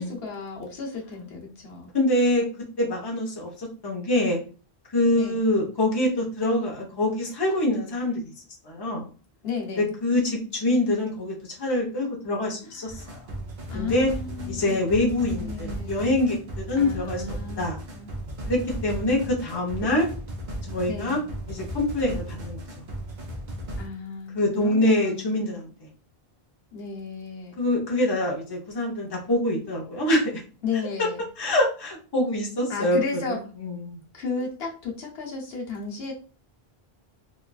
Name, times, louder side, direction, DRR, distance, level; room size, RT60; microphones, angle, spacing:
voice 1, 0.0-1.9 5.2-5.4 9.4-9.9 12.7-13.1 13.7-14.8 15.4-16.1 16.8-18.1 20.9-21.3 23.8-25.3 26.7-27.6 30.6-31.2 32.7-33.4 34.1-36.1, left 4 dB, 80° left, -1 dB, 1.0 m, -34 dB
voice 2, 1.9-2.5 2.8-4.4 4.9-8.2 8.6-9.1 9.8-13.2 13.7-14.1 14.5-17.8 18.5-20.1 20.7-21.2 21.5-22.8 24.3-25.7 27.6-30.4 31.4-33.0 33.3-34.0, left 1 dB, 25° left, -2 dB, 0.7 m, -25 dB
sound 1, 12.9-23.9, right 1 dB, 55° right, 0.7 m, -36 dB
3.1 x 2.3 x 2.3 m, 0.37 s
omnidirectional pair, 1.0 m